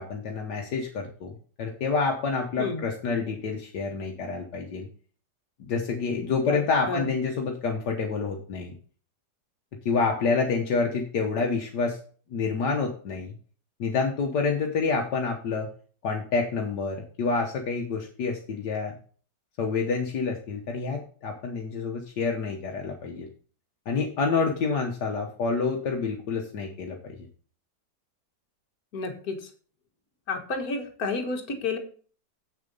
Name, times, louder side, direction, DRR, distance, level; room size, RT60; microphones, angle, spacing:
voice 1, 0.0-4.9 5.7-8.7 9.9-12.0 12.3-13.3 13.8-15.7 16.0-18.9 19.6-23.3 23.9-27.2, left 4 dB, 75° left, 1 dB, 1.7 m, -28 dB
voice 2, 28.9-29.5 30.3-31.8, left 3 dB, 60° left, 3 dB, 2.0 m, -30 dB
8.1 x 6.8 x 5.3 m, 0.43 s
omnidirectional pair, 1.8 m